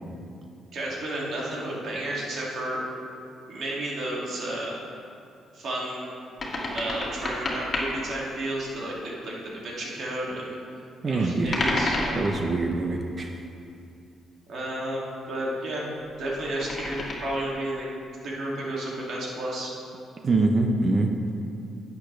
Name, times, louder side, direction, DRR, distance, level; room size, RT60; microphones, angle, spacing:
voice 1, 0.7-2.8 3.5-4.8 5.5-6.1 6.7-10.6 11.1-11.9 14.5-15.9 16.2-17.9 18.2-19.7, right 1 dB, 65° right, -5 dB, 2.4 m, -32 dB
sound 1, 6.4-7.9 11.4-12.5 16.1-17.1, left 2 dB, 35° left, 2.0 m, -29 dB
voice 2, 11.0-11.6 12.1-13.4 20.2-21.1, right 2 dB, 35° right, 3 dB, 0.8 m, -24 dB
11.0 x 8.4 x 3.4 m, 2.5 s
cardioid pair, 90°, 0 cm